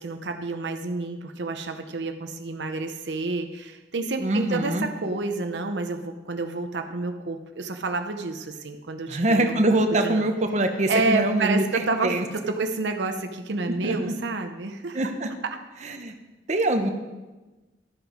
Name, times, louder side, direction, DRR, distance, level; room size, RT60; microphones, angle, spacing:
voice 1, 0.0-9.5 9.9-10.2 10.9-15.0, right 3 dB, 75° right, 6 dB, 0.7 m, -29 dB
voice 2, 4.2-4.9 9.1-12.2 13.7-14.1 14.9-15.3 15.8-16.1 16.5-16.9, right 1 dB, 40° right, 5 dB, 0.9 m, -24 dB
12.0 x 7.9 x 5.1 m, 1.2 s
head